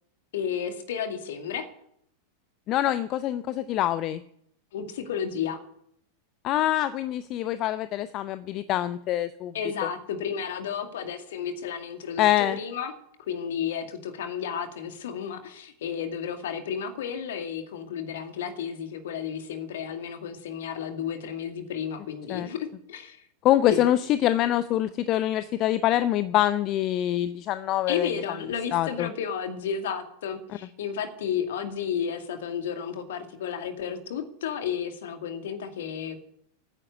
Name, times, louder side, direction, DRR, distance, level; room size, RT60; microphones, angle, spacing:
voice 1, 0.3-1.7 4.7-5.6 9.5-23.2 23.7-23.8 27.9-36.2, left 7 dB, 60° left, 7 dB, 2.2 m, -32 dB
voice 2, 2.7-4.2 6.4-9.5 12.2-12.6 22.3-22.5 23.4-28.1 28.7-29.1, left 13 dB, 35° left, 15 dB, 0.6 m, -25 dB
15.5 x 9.7 x 8.0 m, 0.71 s
figure-of-eight pair, 90°, 0 cm